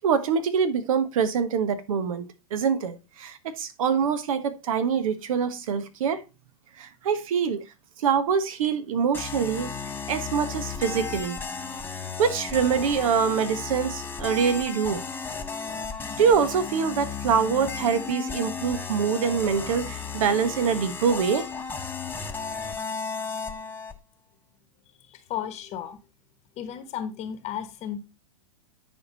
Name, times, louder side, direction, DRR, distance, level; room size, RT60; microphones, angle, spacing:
voice 1, 0.0-6.2 6.8-7.6 8.0-9.7 10.1-11.4 12.2-15.0 16.2-21.5, right 6 dB, 65° right, 1.2 m, -25 dB
sound 1, 9.1-24.0, left 5 dB, 10° left, 1.0 m, -34 dB
voice 2, 25.1-26.0 26.6-28.0, left 9 dB, 35° left, 1.2 m, -34 dB
9.8 x 4.7 x 4.0 m
hypercardioid pair, 110°, 19 cm